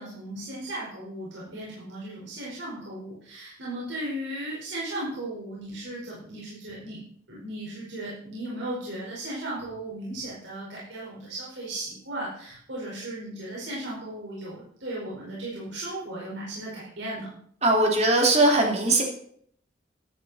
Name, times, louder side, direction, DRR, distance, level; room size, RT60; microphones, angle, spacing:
voice 1, 0.0-7.0 7.3-17.3, right 1 dB, 75° right, -6 dB, 4.9 m, -36 dB
voice 2, 17.6-19.0, right 2 dB, 35° right, 1 dB, 3.1 m, -20 dB
14.5 x 12.0 x 4.3 m, 0.64 s
head